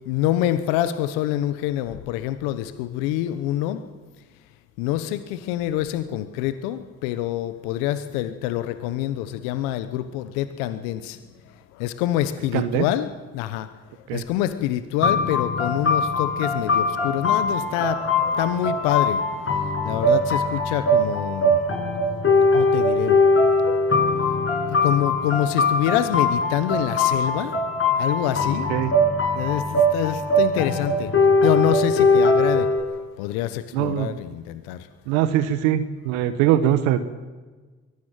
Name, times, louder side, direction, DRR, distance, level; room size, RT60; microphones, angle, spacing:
voice 1, 0.1-3.8 4.8-11.2 11.5-13.7 14.1-21.6 22.5-23.2 24.3-28.7 29.3-31.1 31.4-34.9, left 12 dB, 80° left, 12 dB, 1.1 m, -26 dB
voice 2, 12.5-12.8 14.1-14.2 28.7-28.9 33.7-34.2 35.1-37.0, right 11 dB, 80° right, 11 dB, 1.2 m, -22 dB
sound 1, 15.0-32.8, left 2 dB, 35° left, 6.8 m, -21 dB
23.0 x 16.5 x 9.1 m, 1.3 s
hypercardioid pair, 50°, 35 cm